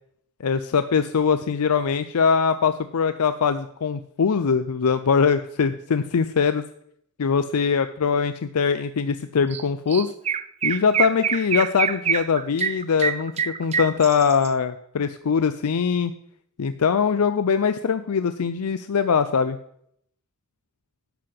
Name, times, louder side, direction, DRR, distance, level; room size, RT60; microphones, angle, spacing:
voice 1, 0.4-6.6 7.2-10.1 10.6-16.1 16.6-19.6, left 6 dB, 80° left, 10 dB, 0.5 m, -22 dB
Chirp tweet, 9.5-9.6 9.9-14.5, right 7 dB, 30° right, 0.4 m, -25 dB
11.5 x 5.8 x 7.6 m, 0.71 s
head